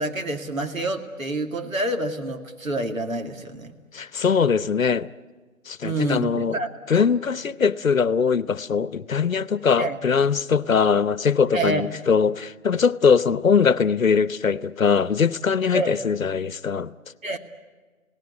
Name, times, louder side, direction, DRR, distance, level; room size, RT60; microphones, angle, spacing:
voice 1, 0.0-3.7 5.8-6.7 7.0-7.1 9.8-10.0 11.5-11.9 15.7-16.0 17.2-17.4, right 2 dB, 75° right, 2.6 m, -27 dB
voice 2, 3.9-5.1 5.7-6.6 6.9-16.9, left 6 dB, 75° left, 0.9 m, -21 dB
28.0 x 18.0 x 9.8 m
figure-of-eight pair, 145°, 41 cm